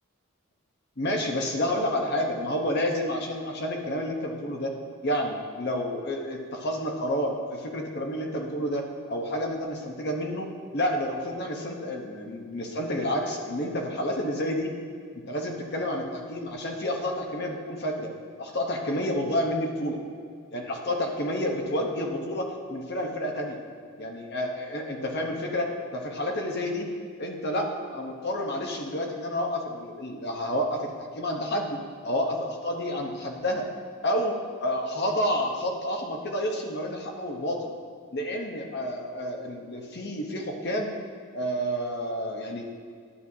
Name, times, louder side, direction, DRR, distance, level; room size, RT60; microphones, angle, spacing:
voice 1, 1.0-4.7 5.0-14.7 15.3-18.1 18.4-20.0 20.5-23.6 24.0-26.9 27.2-31.8 32.0-33.7 34.0-37.7 38.1-40.9 41.3-42.7, equal, 50° left, 2 dB, 1.0 m, -29 dB
11.0 x 7.8 x 2.8 m, 2.1 s
head